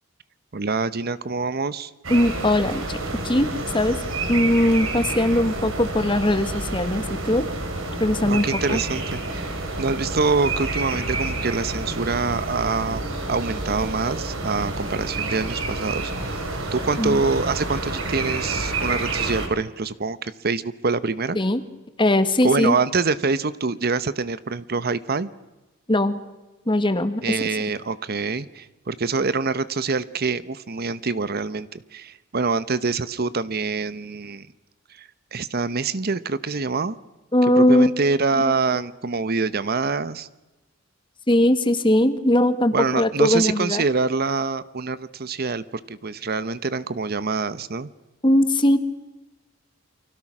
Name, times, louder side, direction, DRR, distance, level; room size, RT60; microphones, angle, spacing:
voice 1, 0.5-1.9 8.2-9.4 9.8-13.0 13.3-16.4 16.7-21.4 22.4-25.3 27.2-34.5 35.0-37.0 37.6-40.3 42.7-47.9, right 4 dB, 50° right, 15 dB, 0.9 m, -25 dB
sound 1, 2.0-19.5, right 2 dB, 75° right, 4.9 m, -29 dB
voice 2, 2.1-3.0 3.2-4.0 4.3-7.5 8.0-8.8 17.0-17.2 21.3-21.6 22.0-22.7 25.9-26.2 26.7-27.4 37.3-37.9 41.3-43.8 48.2-48.8, left 1 dB, 25° left, 10 dB, 1.7 m, -20 dB
29.5 x 24.5 x 6.1 m, 1.1 s
head